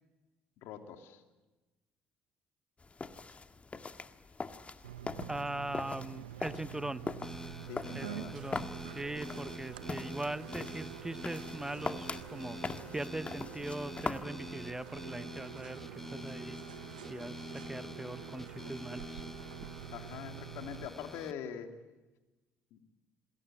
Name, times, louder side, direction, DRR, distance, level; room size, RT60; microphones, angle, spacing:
voice 1, 0.6-1.2 7.6-8.6 19.9-21.7 22.7-22.8, left 8 dB, 70° left, 6 dB, 2.9 m, -44 dB
sound 1, 2.8-14.2, left 4 dB, 30° left, 1.8 m, -42 dB
sound 2, 4.8-20.9, right 11 dB, 90° right, 1.0 m, -47 dB
voice 2, 5.3-7.1 7.9-12.6 12.9-16.6 17.1-19.2, right 1 dB, 10° right, 15 dB, 0.9 m, -41 dB
sound 3, 7.2-21.3, left 1 dB, 5° left, 1.0 m, -47 dB
28.0 x 21.0 x 9.1 m, 1.1 s
hypercardioid pair, 55°, 4 cm